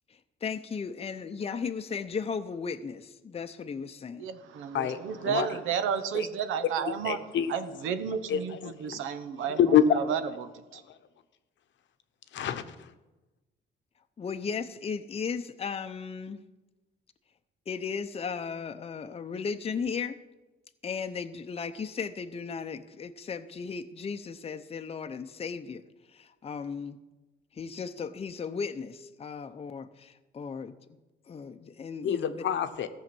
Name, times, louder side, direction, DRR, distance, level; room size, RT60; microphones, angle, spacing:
voice 1, 0.4-4.2 14.2-16.4 17.7-20.2 20.8-25.8 26.1-27.0 27.5-30.7 31.3-32.5, left 6 dB, 30° left, 0.6 m, -36 dB
voice 2, 4.2-7.2 7.5-10.8, right 8 dB, 85° right, 0.9 m, -32 dB
voice 3, 4.7-5.5 6.1-6.3 7.0-7.5 8.3-9.0 9.6-10.0 12.3-12.8 32.0-32.9, left 8 dB, 70° left, 0.9 m, -26 dB
14.5 x 6.5 x 6.0 m
cardioid pair, 90°, 20 cm